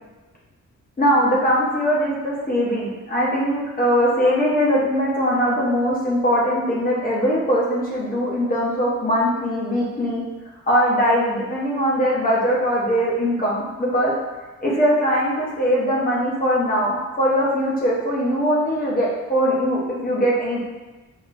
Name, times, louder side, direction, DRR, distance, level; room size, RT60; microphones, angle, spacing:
voice 1, 1.0-10.2 10.7-14.1 14.6-20.6, equal, 30° left, -5 dB, 0.9 m, -21 dB
4.8 x 2.9 x 2.6 m, 1.2 s
wide cardioid pair, 175°, 30 cm